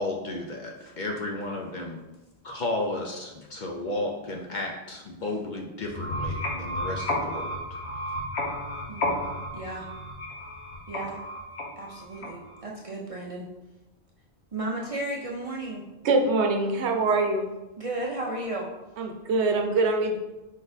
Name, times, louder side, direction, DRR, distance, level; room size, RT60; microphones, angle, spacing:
voice 1, 0.0-2.0 2.4-7.6, left 2 dB, 55° left, 1 dB, 0.5 m, -33 dB
sound 1, 5.8-12.6, left 1 dB, 75° left, 1.1 m, -32 dB
voice 2, 8.9-9.3 9.5-9.9 10.9-11.2 11.8-13.5 14.5-15.8 17.8-18.7, right 2 dB, 50° right, -2 dB, 0.4 m, -34 dB
voice 3, 16.0-17.5 19.0-20.2, right 3 dB, 80° right, 4 dB, 0.9 m, -24 dB
5.0 x 3.9 x 2.6 m, 1.0 s
omnidirectional pair, 1.1 m